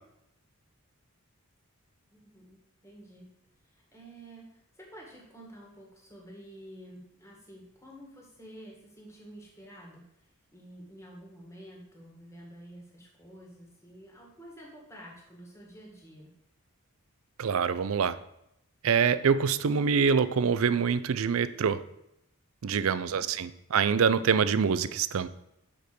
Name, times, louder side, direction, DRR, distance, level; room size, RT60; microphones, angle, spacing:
voice 1, 2.1-3.3 3.6-16.3, right 1 dB, 15° left, -2 dB, 1.9 m, -50 dB
voice 2, 17.4-18.2 18.8-21.8 22.6-25.3, right 6 dB, 65° right, 14 dB, 0.4 m, -25 dB
6.0 x 5.0 x 6.8 m, 0.80 s
head